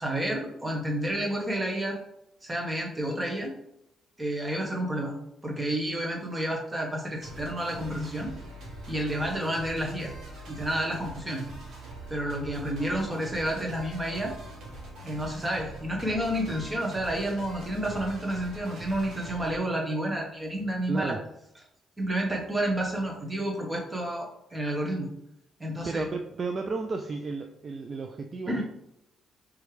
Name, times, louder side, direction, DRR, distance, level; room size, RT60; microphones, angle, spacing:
voice 1, 0.0-2.0 2.4-3.5 4.2-5.2 5.4-8.4 8.9-10.1 10.5-11.4 12.1-14.3 15.0-21.2 22.0-25.1 25.6-26.1 28.5-28.6, right 1 dB, 15° right, -1 dB, 1.0 m, -30 dB
sound 1, 7.2-19.6, right 1 dB, 70° right, 1.4 m, -43 dB
voice 2, 20.9-21.2 25.8-28.6, right 4 dB, 40° right, 5 dB, 0.3 m, -33 dB
3.5 x 3.2 x 3.2 m, 0.81 s
cardioid pair, 90°, 0 cm